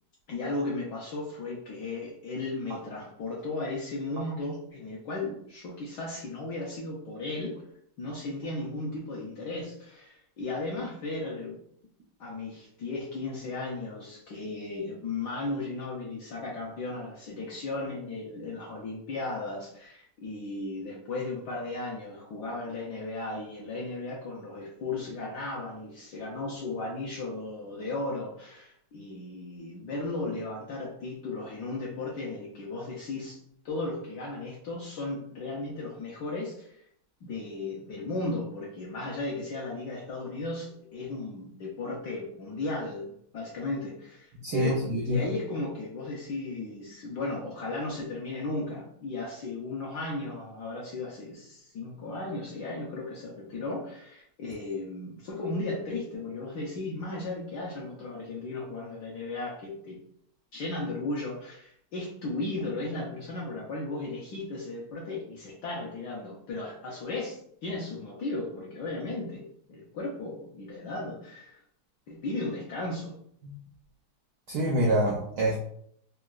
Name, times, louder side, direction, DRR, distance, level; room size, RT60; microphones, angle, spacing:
voice 1, 0.3-7.6 8.0-11.6 12.2-33.4 33.6-36.8 37.2-60.0 60.5-71.6 72.1-73.2, left 2 dB, 70° left, -4 dB, 1.0 m, -35 dB
voice 2, 44.4-45.2 73.4-73.5 74.5-75.6, right 1 dB, 80° right, -2 dB, 0.9 m, -26 dB
3.8 x 2.2 x 2.3 m, 0.68 s
omnidirectional pair, 2.3 m